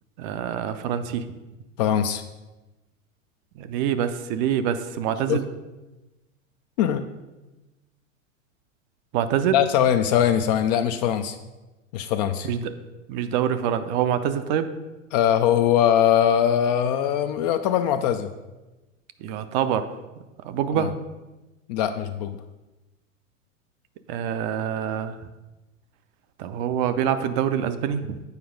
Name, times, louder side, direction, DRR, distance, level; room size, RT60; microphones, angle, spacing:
voice 1, 0.2-1.3 3.6-5.5 9.1-9.6 12.4-12.8 13.1-14.7 19.2-19.9 20.4-20.9 24.1-25.2 26.4-28.2, right 9 dB, 35° right, 10 dB, 0.5 m, -25 dB
voice 2, 1.8-2.2 5.3-5.4 6.8-7.1 9.5-11.4 11.9-12.5 15.1-18.3 20.8-20.9 21.7-22.4, left 9 dB, 35° left, 9 dB, 0.4 m, -21 dB
8.0 x 4.6 x 5.1 m, 1.1 s
figure-of-eight pair, 95°, 40 cm